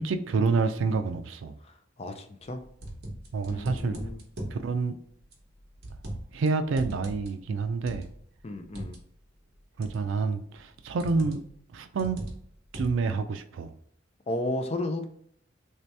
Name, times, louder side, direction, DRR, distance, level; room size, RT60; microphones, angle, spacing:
voice 1, 0.0-1.6 3.3-4.0 4.5-4.9 6.3-8.1 9.8-11.4 11.7-12.2 12.7-13.7, right 4 dB, 80° right, 8 dB, 0.4 m, -28 dB
voice 2, 1.6-2.6 3.5-4.2 8.4-9.0 14.3-15.0, left 1 dB, 30° left, 6 dB, 0.4 m, -33 dB
sound 1, 2.5-4.6 5.3-6.5 6.7-9.0 9.8-10.2 11.0-11.5 12.0-13.1, right 1 dB, 55° right, 0.9 m, -39 dB
3.2 x 2.8 x 3.2 m, 0.68 s
head